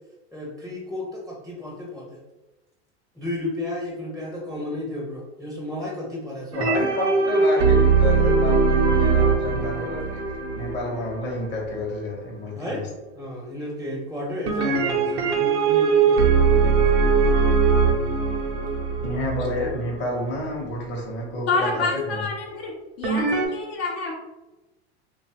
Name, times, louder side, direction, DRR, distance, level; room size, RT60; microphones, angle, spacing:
voice 1, 0.3-2.2 3.1-6.7 9.5-9.6 12.5-12.8 13.1-17.0, left 1 dB, ahead, -3 dB, 0.5 m, -33 dB
voice 2, 6.5-10.2 10.5-12.8 19.0-22.2, left 2 dB, 35° left, -2 dB, 0.8 m, -30 dB
sound 1, 6.5-11.8 14.5-20.4 23.0-23.5, right 5 dB, 90° right, 0.6 m, -21 dB
voice 3, 21.5-22.7 23.0-24.1, left 3 dB, 65° left, -1 dB, 0.6 m, -27 dB
2.6 x 2.3 x 2.8 m, 1.1 s
hypercardioid pair, 100°, 33 cm